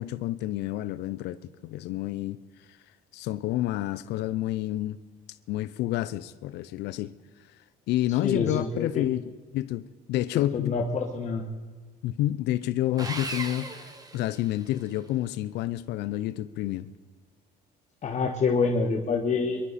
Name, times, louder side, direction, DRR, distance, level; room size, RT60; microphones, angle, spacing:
voice 1, 0.0-2.4 3.1-5.0 5.5-7.1 7.9-10.8 12.0-13.9 14.1-16.9, left 14 dB, 80° left, 0.6 m, -29 dB
voice 2, 8.2-9.0 10.3-11.4 18.0-19.6, left 4 dB, 45° left, 1.5 m, -27 dB
Sawing, 13.0-14.9, right 2 dB, 20° right, 1.7 m, -37 dB
23.0 x 12.5 x 4.2 m
cardioid pair, 110°, 17 cm